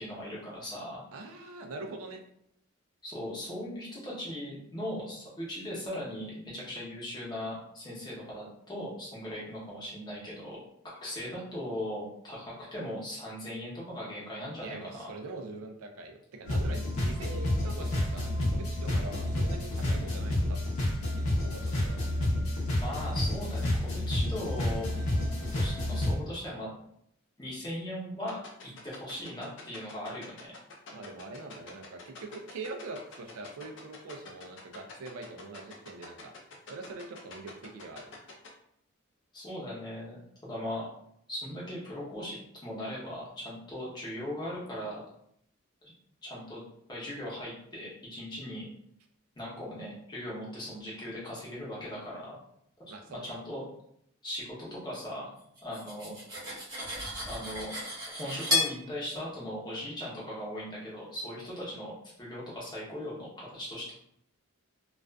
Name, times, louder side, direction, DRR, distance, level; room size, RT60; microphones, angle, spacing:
voice 1, 0.0-1.0 3.0-10.6 10.8-15.1 22.8-25.0 25.5-26.7 27.4-28.4 28.6-30.5 39.3-40.9 41.3-45.0 45.8-45.9 46.2-46.6 46.9-48.7 49.4-52.4 53.1-53.6 54.2-55.3 55.6-56.1 57.3-57.7 58.1-63.9, left 1 dB, 20° left, -6 dB, 0.7 m, -39 dB
voice 2, 1.1-2.2 14.6-20.6 21.4-22.0 30.9-36.3 36.7-38.2 52.9-53.3, right 3 dB, 85° right, 4 dB, 0.4 m, -43 dB
sound 1, 16.5-26.2, left 1 dB, 90° left, 0.7 m, -29 dB
sound 2, 28.3-38.5, left 5 dB, 55° left, 0.5 m, -46 dB
Cutlery silverware, 55.6-58.8, left 2 dB, 15° right, 0.8 m, -33 dB
2.4 x 2.3 x 2.2 m, 0.72 s
head